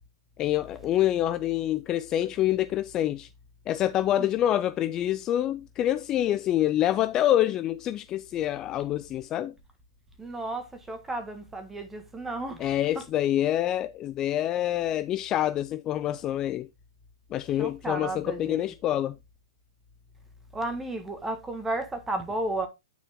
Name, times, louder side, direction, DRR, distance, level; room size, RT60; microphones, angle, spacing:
voice 1, 0.4-3.3 3.7-9.5 12.6-16.7 17.3-19.2, left 12 dB, 25° left, 0.4 m, -26 dB
voice 2, 10.2-12.7 17.6-18.7 20.5-22.7, right 2 dB, 10° right, 1.6 m, -33 dB
9.3 x 4.4 x 3.6 m
hypercardioid pair, 145°, 3 cm